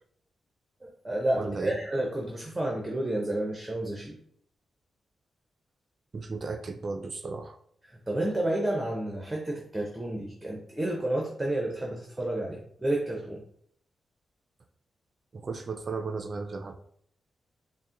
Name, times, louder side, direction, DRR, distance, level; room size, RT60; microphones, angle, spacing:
voice 1, 0.8-4.2 7.9-13.4, right 1 dB, 15° right, -1 dB, 0.7 m, -30 dB
voice 2, 1.4-1.8 6.1-7.6 15.3-16.7, right 4 dB, 45° right, 6 dB, 0.4 m, -35 dB
4.1 x 2.1 x 3.7 m, 0.65 s
cardioid pair, 90°, 0 cm